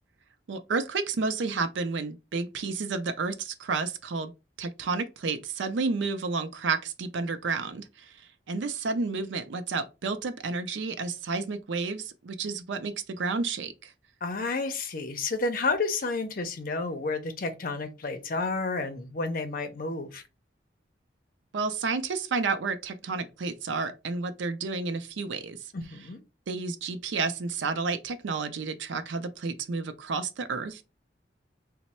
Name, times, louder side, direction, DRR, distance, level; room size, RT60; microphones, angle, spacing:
voice 1, 0.5-4.3 4.6-8.1 8.5-13.9 21.5-25.6 26.5-30.8, right 4 dB, 85° right, 0.5 m, -31 dB
voice 2, 14.2-20.2 25.7-26.2, left 3 dB, 50° left, 0.6 m, -31 dB
3.0 x 2.1 x 4.2 m
head